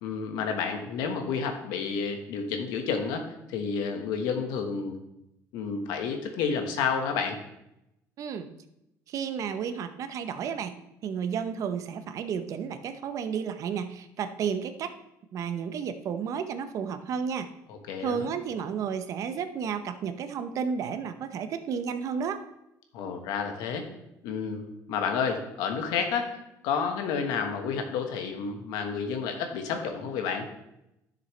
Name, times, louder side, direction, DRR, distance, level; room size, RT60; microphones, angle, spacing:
voice 1, 0.0-5.0 5.5-7.4 17.7-18.3 22.9-23.9 24.2-26.4 26.6-30.5, left 6 dB, 90° left, 5 dB, 1.4 m, -30 dB
voice 2, 8.2-8.5 9.1-10.7 11.0-14.9 15.3-17.5 18.0-22.4, right 7 dB, 50° right, 10 dB, 0.7 m, -32 dB
11.5 x 6.8 x 3.3 m, 0.85 s
cardioid pair, 135°, 7 cm